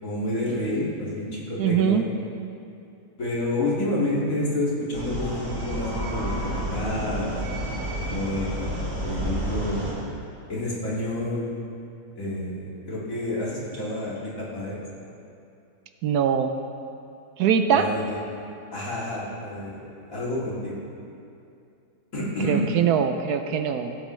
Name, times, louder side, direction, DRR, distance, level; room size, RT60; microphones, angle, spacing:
voice 1, 0.0-2.1 3.2-7.4 8.0-9.9 10.5-11.5 12.2-14.8 17.7-18.2 18.7-20.9 22.1-22.7, left 1 dB, 55° left, -7 dB, 2.6 m, -29 dB
voice 2, 1.6-2.0 16.0-16.5 17.4-17.9 22.5-24.0, right 8 dB, 75° right, 7 dB, 1.1 m, -22 dB
sound 1, 4.9-9.9, right 1 dB, 90° right, 3.6 m, -30 dB
15.5 x 8.8 x 3.2 m, 2.6 s
omnidirectional pair, 1.8 m